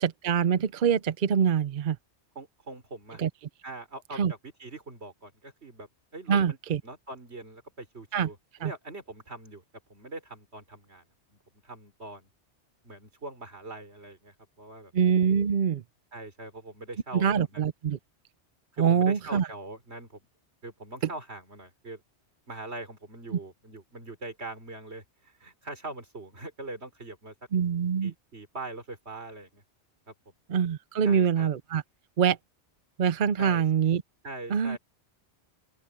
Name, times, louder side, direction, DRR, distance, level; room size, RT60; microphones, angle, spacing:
voice 1, 0.0-2.0 3.2-3.3 4.2-4.3 6.3-6.8 8.1-8.3 8.6-8.7 14.9-15.8 17.1-18.0 18.8-19.5 27.5-28.1 30.5-31.8 32.2-32.4 33.0-34.0 34.5-34.8, right 7 dB, 55° right, 0.7 m, -24 dB
voice 2, 2.4-3.2 3.6-5.9 6.1-6.6 6.8-9.6 9.9-11.0 11.3-11.4 11.6-12.3 12.8-14.9 16.1-17.7 18.7-20.2 20.6-22.0 22.5-27.3 28.0-29.6 30.1-30.2 31.0-31.5 33.4-33.6 34.2-34.8, right 2 dB, 70° right, 4.3 m, -42 dB
open air
omnidirectional pair, 1.2 m